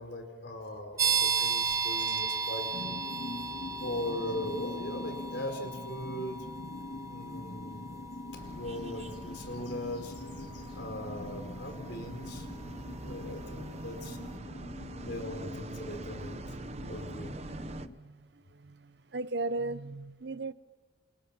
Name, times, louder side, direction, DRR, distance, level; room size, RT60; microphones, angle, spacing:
voice 1, 0.0-3.0 3.8-6.5 7.1-12.5 13.0-14.2 15.0-17.7, left 1 dB, 60° left, 4.4 m, -40 dB
sound 1, 1.0-13.5, right 5 dB, 15° right, 1.2 m, -36 dB
sound 2, 2.7-18.0, left 1 dB, 80° left, 1.7 m, -44 dB
sound 3, 8.3-17.9, right 2 dB, 35° right, 0.9 m, -44 dB
voice 2, 12.1-13.3 14.5-14.6 16.6-16.9 17.9-20.5, right 2 dB, 60° right, 0.7 m, -39 dB
29.0 x 28.0 x 5.9 m
head